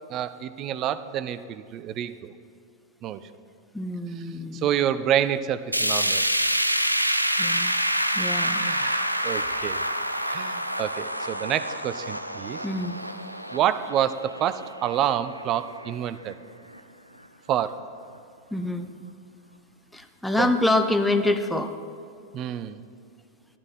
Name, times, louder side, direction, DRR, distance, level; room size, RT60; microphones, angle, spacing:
voice 1, 0.1-2.3 3.0-3.2 4.2-4.3 4.5-6.4 8.6-9.8 10.3-12.6 13.5-16.4 17.5-17.8 20.4-20.5 22.3-22.8, right 10 dB, 35° right, 12 dB, 0.5 m, -28 dB
voice 2, 3.7-4.7 7.4-7.8 8.1-8.7 9.2-9.4 12.6-13.0 18.5-18.9 19.9-21.7, left 2 dB, 5° left, 7 dB, 0.7 m, -26 dB
sound 1, 5.7-15.9 16.3-16.4 16.8-16.9 17.7-17.8, equal, 90° right, 0.4 m, -27 dB
11.5 x 11.0 x 4.3 m, 2.4 s
figure-of-eight pair, 90°, 0 cm